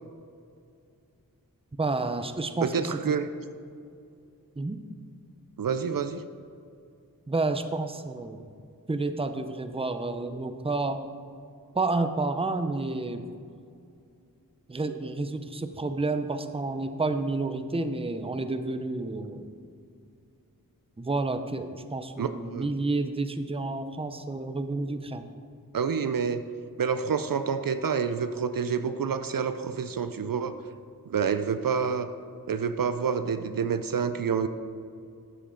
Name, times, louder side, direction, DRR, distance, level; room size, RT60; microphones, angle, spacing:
voice 1, 1.8-3.0 4.6-4.8 7.3-8.4 8.9-11.0 11.7-13.2 14.7-19.5 21.0-25.2, right 3 dB, 15° right, 9 dB, 0.6 m, -30 dB
voice 2, 2.6-3.3 5.6-6.2 22.2-22.7 25.7-26.4 26.8-30.6 31.1-32.1 32.5-34.5, right 6 dB, 70° right, 10 dB, 0.5 m, -28 dB
11.0 x 7.3 x 3.8 m, 2.4 s
wide cardioid pair, 55°, 36 cm